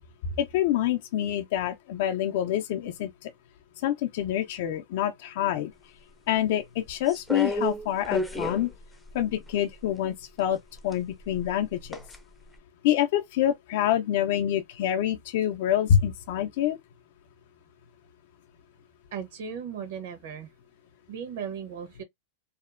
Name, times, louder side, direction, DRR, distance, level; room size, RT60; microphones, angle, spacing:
voice 1, 0.4-3.3 3.8-5.7 6.3-8.7 9.1-10.6 10.8-12.0 12.8-16.8, left 11 dB, 65° left, 0.4 m, -26 dB
sound 1, 7.1-9.8 10.7-12.2 12.5-12.6, equal, ahead, 0.4 m, -32 dB
voice 2, 19.1-20.5 21.1-22.0, right 7 dB, 70° right, 0.9 m, -36 dB
2.7 x 2.1 x 2.4 m
supercardioid pair, 135°, 0 cm